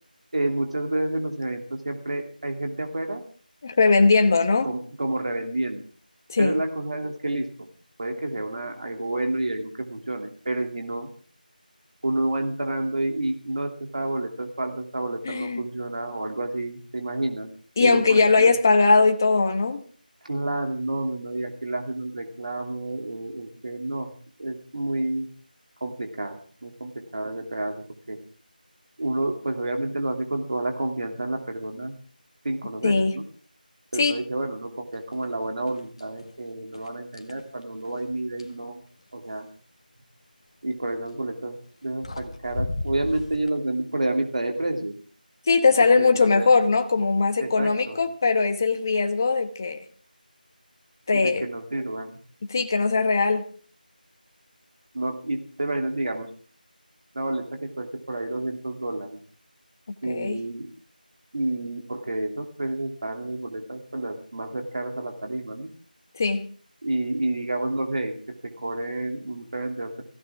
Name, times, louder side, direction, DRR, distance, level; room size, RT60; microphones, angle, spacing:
voice 1, 0.3-3.2 4.6-5.8 6.4-7.7 8.0-11.1 12.0-17.5 17.8-18.5 20.2-24.1 24.4-25.3 25.8-28.2 29.0-32.0 32.4-33.2 33.9-38.8 39.1-39.5 40.6-41.6 41.8-44.9 45.8-46.5 47.4-48.0 51.1-52.2 54.9-56.3 57.1-59.2 60.0-60.7 61.3-65.7 66.8-69.9, right 2 dB, 50° right, 3 dB, 2.7 m, -29 dB
voice 2, 3.6-4.7 6.3-6.5 15.3-15.6 17.8-19.8 32.8-33.2 34.0-34.1 45.5-49.8 51.1-51.4 52.5-53.4 60.1-60.4 66.1-66.5, left 4 dB, 20° left, 7 dB, 1.1 m, -20 dB
sound 1, 35.1-35.3 35.7-36.3 36.7-38.6 40.8-41.1 41.7-41.8 42.0-43.5, left 2 dB, 40° left, 1.9 m, -35 dB
23.0 x 16.5 x 3.6 m, 0.43 s
figure-of-eight pair, 175°, 5 cm